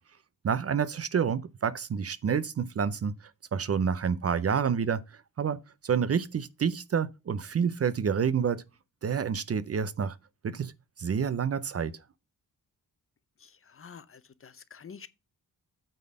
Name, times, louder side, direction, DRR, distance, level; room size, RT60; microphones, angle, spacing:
voice 1, 0.4-3.1 3.5-5.0 5.4-8.6 9.0-10.2 10.4-10.7 11.0-11.9, right 7 dB, 40° right, 0.5 m, -28 dB
voice 2, 13.4-15.1, left 6 dB, 35° left, 0.7 m, -48 dB
9.0 x 4.0 x 6.3 m
wide cardioid pair, 170°, 37 cm